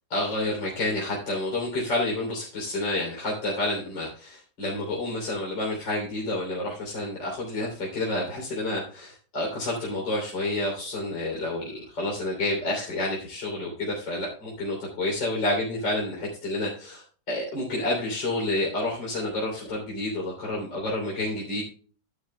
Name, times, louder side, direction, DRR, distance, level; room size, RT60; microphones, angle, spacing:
voice 1, 0.1-21.6, left 2 dB, 65° left, -3 dB, 4.1 m, -29 dB
13.5 x 11.5 x 2.3 m, 0.42 s
omnidirectional pair, 2.2 m